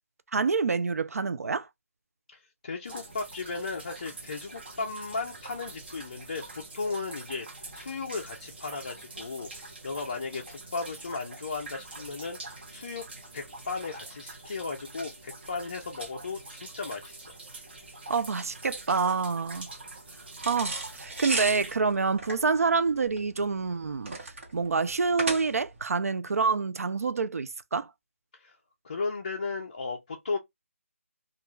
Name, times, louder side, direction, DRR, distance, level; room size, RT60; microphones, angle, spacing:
voice 1, 0.3-1.7 18.1-19.7 20.4-24.1 24.5-27.9, right 4 dB, 85° right, 0.4 m, -27 dB
voice 2, 2.3-13.1 13.3-17.4 28.4-28.6 28.8-30.4, left 4 dB, 30° left, 0.4 m, -36 dB
sound 1, 2.8-21.8, right 2 dB, 45° right, 0.8 m, -45 dB
sound 2, 20.4-25.8, right 2 dB, 60° right, 1.1 m, -35 dB
2.3 x 2.3 x 3.0 m
hypercardioid pair, 175°, 8 cm